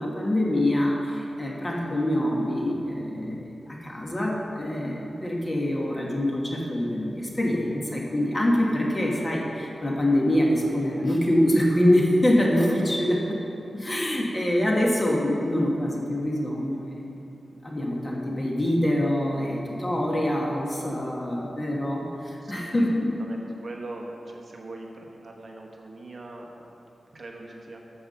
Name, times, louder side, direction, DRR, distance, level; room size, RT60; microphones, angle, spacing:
voice 1, 0.0-13.2 13.7-16.9 17.6-23.1, left 1 dB, 25° left, -2 dB, 1.5 m, -25 dB
voice 2, 22.4-22.9 23.2-26.5 27.1-27.8, right 2 dB, 45° right, 0 dB, 1.1 m, -41 dB
13.0 x 4.8 x 6.8 m, 2.8 s
wide cardioid pair, 140°, 0 cm